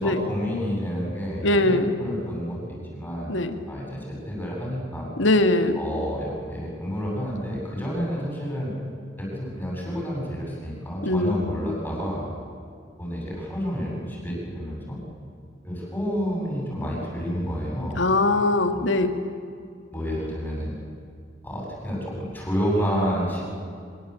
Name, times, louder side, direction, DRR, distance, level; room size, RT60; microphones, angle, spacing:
voice 1, 0.0-3.3 3.7-5.1 5.7-8.7 9.2-12.3 13.0-15.0 15.6-18.0 18.7-18.8 19.9-20.7 21.4-23.4, equal, 10° left, -4 dB, 7.9 m, -29 dB
voice 2, 1.4-1.9 3.3-3.6 5.2-5.8 11.0-11.4 18.0-19.1, left 2 dB, 75° left, 7 dB, 2.2 m, -21 dB
25.5 x 23.0 x 8.3 m, 2.4 s
head